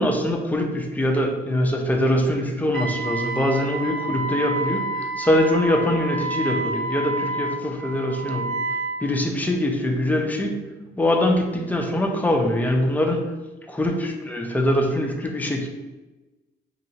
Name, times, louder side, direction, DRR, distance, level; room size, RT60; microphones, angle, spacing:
voice 1, 0.0-8.5 9.0-10.6 10.9-13.3 13.7-15.7, left 1 dB, 10° left, 2 dB, 0.5 m, -23 dB
Wind instrument woodwind instrument, 2.7-9.0, right 2 dB, 85° right, 0.9 m, -29 dB
3.1 x 2.8 x 2.7 m, 1.1 s
cardioid pair, 90°, 20 cm